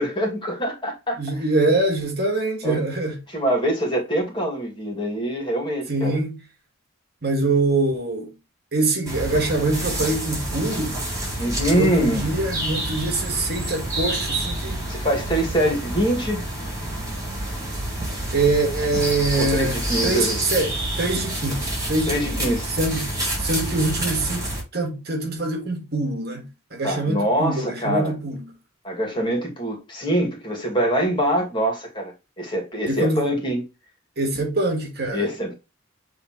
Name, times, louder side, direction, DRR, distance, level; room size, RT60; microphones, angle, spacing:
voice 1, 0.0-1.2 2.6-2.8 3.3-6.2 11.4-12.3 14.9-16.4 19.4-20.4 22.1-22.7 26.8-28.1 28.8-33.7 35.1-35.5, right 1 dB, 25° left, 2.4 m, -24 dB
voice 2, 1.2-3.2 5.9-6.4 7.2-8.3 8.7-11.0 11.7-14.8 18.3-19.8 20.0-22.5 22.8-23.1 23.4-24.5 24.7-28.5 32.9-33.2 34.2-35.3, right 2 dB, 50° right, 1.8 m, -24 dB
sound 1, 9.0-24.6, right 1 dB, 15° right, 4.0 m, -28 dB
8.3 x 3.6 x 3.1 m
head